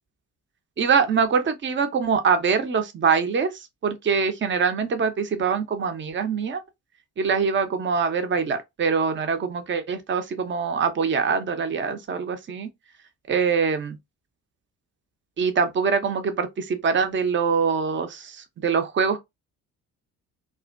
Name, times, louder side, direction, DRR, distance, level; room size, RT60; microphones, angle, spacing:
voice 1, 0.8-6.6 7.2-12.7 13.3-14.0 15.4-19.2, right 5 dB, 25° right, 0.6 m, -24 dB
2.4 x 2.2 x 2.4 m
hypercardioid pair, 45°, 44 cm